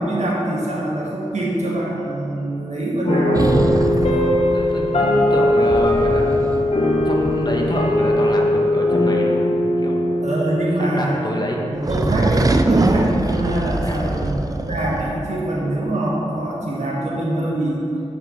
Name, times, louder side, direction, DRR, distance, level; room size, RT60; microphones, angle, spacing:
voice 1, 0.0-3.6 10.2-11.2 11.6-17.9, right 1 dB, 75° right, -4 dB, 1.5 m, -24 dB
sound 1, 3.1-11.6, left 1 dB, 60° left, 1.2 m, -19 dB
sound 2, 3.3-8.3 11.8-15.2, right 2 dB, 30° right, 0.5 m, -23 dB
voice 2, 4.1-6.7 7.0-9.4 9.8-10.0 10.8-11.6 13.8-14.3, left 1 dB, 35° left, -1 dB, 1.3 m, -27 dB
8.1 x 6.1 x 5.3 m, 2.8 s
wide cardioid pair, 65°, 12 cm